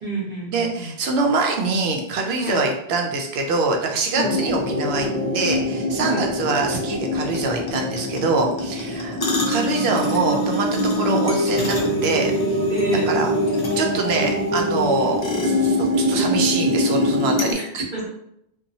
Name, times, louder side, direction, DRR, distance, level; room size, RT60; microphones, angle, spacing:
voice 1, 0.0-1.0 2.4-2.6 4.1-4.4 6.0-6.2 12.7-13.1 17.5-17.6 17.9-18.1, right 2 dB, 50° right, -8 dB, 0.9 m, -29 dB
voice 2, 0.5-5.1 5.3-9.2 9.5-11.8 12.0-12.3 13.1-13.3 13.8-17.5 17.7-17.8, right 3 dB, 80° right, 2 dB, 0.8 m, -24 dB
sound 1, 4.2-17.5, equal, 35° left, 0.4 m, -23 dB
2.9 x 2.3 x 2.6 m, 0.77 s
omnidirectional pair, 1.1 m